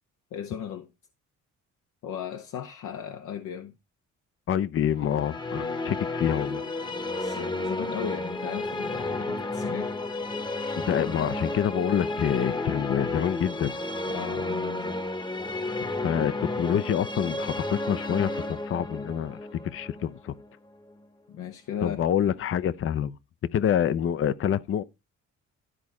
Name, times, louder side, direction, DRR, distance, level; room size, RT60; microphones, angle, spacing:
voice 1, 0.3-0.9 2.0-3.7 7.2-9.9 14.1-15.1 19.6-19.7 21.3-22.0, left 8 dB, 80° left, 0.9 m, -36 dB
voice 2, 4.5-6.6 10.8-13.7 16.0-20.3 21.8-23.2 23.5-24.8, left 9 dB, 45° left, 0.6 m, -27 dB
sound 1, 5.0-21.0, left 2 dB, 15° left, 0.9 m, -32 dB
12.5 x 4.2 x 4.7 m
cardioid pair, 90°, 30 cm